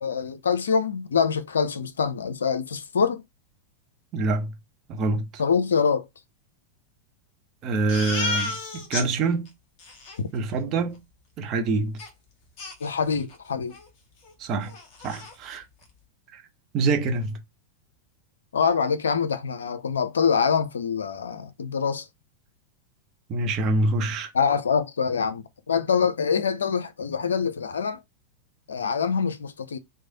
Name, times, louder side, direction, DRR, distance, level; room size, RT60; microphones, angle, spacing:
voice 1, 0.0-3.2 5.4-6.0 10.2-10.3 12.8-13.8 18.5-22.1 24.3-28.0 28.7-29.8, left 6 dB, 70° left, 0.4 m, -25 dB
voice 2, 4.1-4.5 4.9-5.4 7.6-9.5 10.3-11.0 11.4-12.0 14.4-14.7 15.0-15.6 16.3-16.4 16.7-17.4 23.3-24.3, right 3 dB, 35° right, 0.7 m, -26 dB
Crying sobbing, 7.9-9.1 9.5-9.6 9.8-10.2 12.0-12.1 12.6-13.4 13.7-13.9 14.2-14.3 14.7-15.3, left 3 dB, 40° left, 1.3 m, -32 dB
3.1 x 2.1 x 3.8 m
figure-of-eight pair, 90°, 0 cm